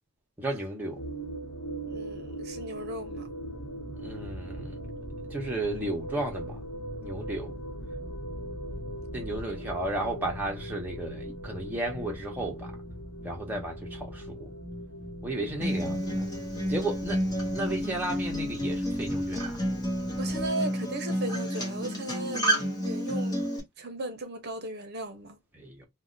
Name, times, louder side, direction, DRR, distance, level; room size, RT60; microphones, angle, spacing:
voice 1, 0.4-1.0 4.0-4.8 5.3-6.6 7.0-7.6 9.1-12.8 13.2-14.5 15.2-16.3 16.7-17.2 17.5-19.6 25.5-25.9, right 1 dB, 10° right, 0.9 m, -34 dB
sound 1, 0.9-20.5, equal, 90° left, 1.1 m, -40 dB
voice 2, 1.9-3.3 9.4-9.6 20.2-23.4 23.8-25.4, right 1 dB, 45° right, 0.7 m, -36 dB
Acoustic guitar, 15.6-23.6, equal, 15° left, 1.0 m, -30 dB
2.7 x 2.1 x 3.8 m
head